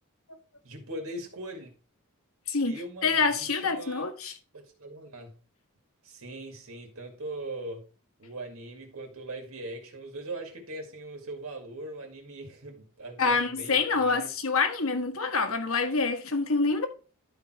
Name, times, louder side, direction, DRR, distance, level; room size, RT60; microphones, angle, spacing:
voice 1, 0.6-1.7 2.7-4.1 4.5-5.3 6.0-7.8 8.2-14.3, right 2 dB, 75° right, 2.1 m, -40 dB
voice 2, 3.0-4.3 13.2-16.9, left 4 dB, 75° left, 1.5 m, -26 dB
11.5 x 4.7 x 4.4 m
head